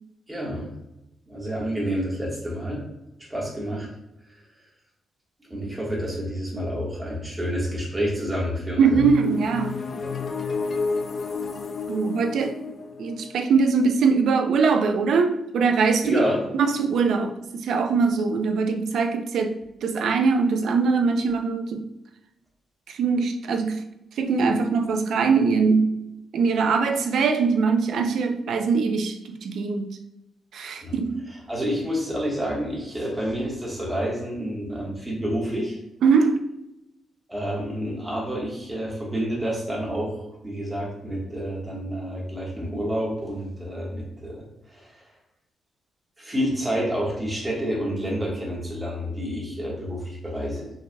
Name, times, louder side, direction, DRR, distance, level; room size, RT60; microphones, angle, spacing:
voice 1, 0.3-0.7 1.3-2.8 3.3-3.9 4.3-4.4 5.4-9.0 16.0-16.4 30.8-31.0 31.3-35.8 37.3-45.1 46.2-50.7, equal, 15° right, -3 dB, 1.3 m, -29 dB
voice 2, 8.8-9.8 11.9-12.6 13.0-16.2 16.5-21.9 22.9-23.8 24.2-26.0 26.3-30.0 30.5-31.2 36.0-36.5, right 5 dB, 70° right, 6 dB, 0.4 m, -22 dB
sound 1, 8.9-14.7, left 4 dB, 40° left, 0.4 m, -31 dB
5.5 x 3.3 x 2.2 m, 0.88 s
cardioid pair, 140°, 0 cm